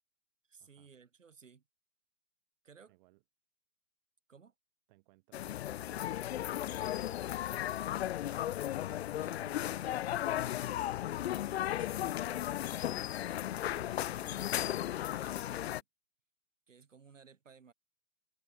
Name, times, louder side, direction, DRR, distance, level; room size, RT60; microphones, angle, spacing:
voice 1, 0.5-1.6 2.6-2.9 4.3-4.5 9.1-10.1 11.3-15.8 16.7-17.7, right 6 dB, 80° right, 7.9 m, -58 dB
voice 2, 2.9-3.2 4.9-5.6 5.9-8.4 10.2-10.6, right 22 dB, 35° right, 3.2 m, -67 dB
sound 1, 5.3-15.8, left 12 dB, 55° left, 0.5 m, -35 dB
hypercardioid pair, 130°, 38 cm